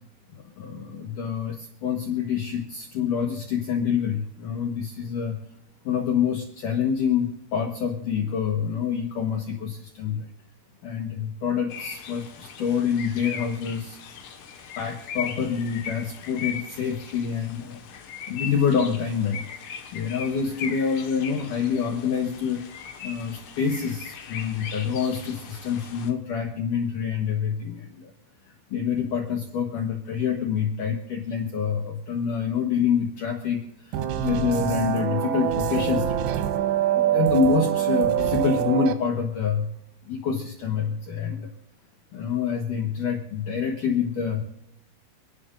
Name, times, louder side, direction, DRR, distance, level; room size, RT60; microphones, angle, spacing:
voice 1, 0.3-5.4 5.8-10.3 10.8-14.0 14.8-17.9 18.3-22.7 23.0-28.1 28.7-36.3 36.9-39.7 40.1-41.5 42.1-44.4, left 7 dB, 85° left, 3 dB, 1.8 m, -27 dB
sound 1, 11.7-26.1, left 7 dB, 65° left, 2.2 m, -39 dB
sound 2, 33.9-38.9, right 10 dB, 75° right, 2.8 m, -24 dB
29.5 x 11.0 x 2.5 m, 0.82 s
omnidirectional pair, 5.6 m